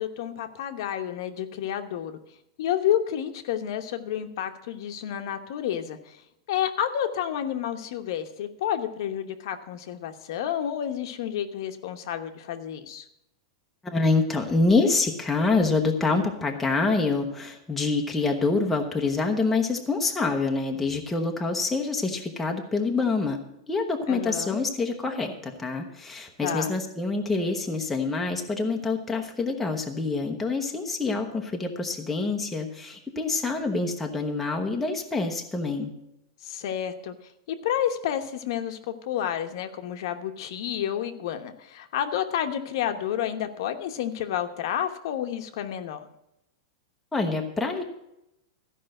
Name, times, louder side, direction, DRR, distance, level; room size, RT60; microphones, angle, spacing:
voice 1, 0.0-2.2 2.6-6.0 6.5-13.0 24.1-24.6 26.4-26.7 36.4-37.1 37.5-46.1, left 10 dB, 55° left, 7 dB, 1.0 m, -30 dB
voice 2, 13.8-23.4 23.7-35.9 47.1-47.8, left 3 dB, 5° left, 1 dB, 0.9 m, -26 dB
13.5 x 5.4 x 7.6 m, 0.84 s
supercardioid pair, 170°, 3 cm